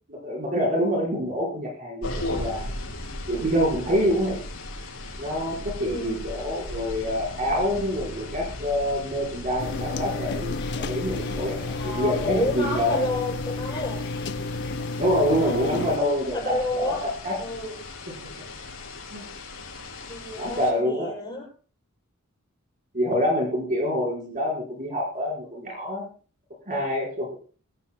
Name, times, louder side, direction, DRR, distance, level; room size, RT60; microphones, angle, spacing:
voice 1, 0.1-2.6 3.3-4.4 5.2-13.0 15.0-17.4 19.1-19.2 20.4-21.1 22.9-26.1 26.7-27.4, equal, 40° right, -1 dB, 4.5 m, -26 dB
sound 1, 2.0-20.7, left 2 dB, 70° left, 5.2 m, -37 dB
voice 2, 5.8-6.2 11.7-14.1 15.1-15.9 16.3-17.1 17.4-17.8 20.1-21.5, left 2 dB, 20° left, -4 dB, 7.0 m, -30 dB
sound 2, 9.6-16.0, left 3 dB, 55° left, 0.7 m, -32 dB
23.0 x 13.5 x 2.2 m, 0.39 s
head